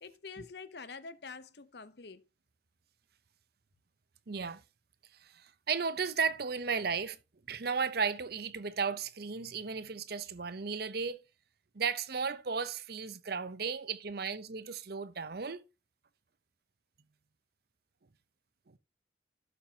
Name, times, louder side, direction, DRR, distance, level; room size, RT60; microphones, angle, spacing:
voice 1, 0.0-2.3, left 4 dB, 55° left, 0.8 m, -46 dB
voice 2, 4.3-4.6 5.2-7.2 7.5-11.2 11.7-15.6, right 5 dB, 55° right, 0.7 m, -34 dB
12.0 x 7.3 x 2.8 m
head